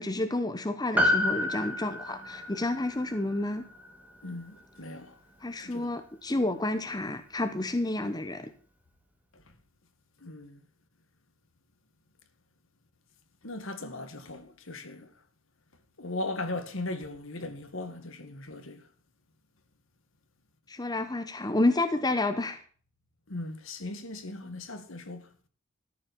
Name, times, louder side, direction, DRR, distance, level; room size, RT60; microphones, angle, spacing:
voice 1, 0.0-3.7 5.4-8.5 20.7-22.6, left 2 dB, 20° left, 0.8 m, -30 dB
Piano, 1.0-5.6 5.8-5.9, left 1 dB, 5° right, 2.0 m, -31 dB
voice 2, 4.2-5.2 5.6-5.9 9.3-9.4 10.2-10.6 13.4-15.1 16.0-18.9 23.3-25.3, left 2 dB, 60° left, 1.6 m, -38 dB
13.5 x 7.1 x 7.0 m
head